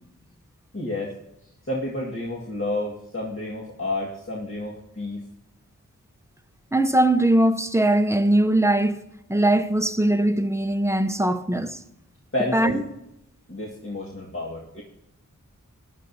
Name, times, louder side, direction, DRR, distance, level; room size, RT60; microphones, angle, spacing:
voice 1, 0.7-1.2 1.6-5.2 12.3-12.8 13.5-14.8, left 1 dB, 40° left, 1.9 m, -30 dB
voice 2, 6.7-11.8 12.5-12.8, right 1 dB, 10° right, 0.7 m, -21 dB
16.0 x 11.0 x 2.8 m
cardioid pair, 40°, 32 cm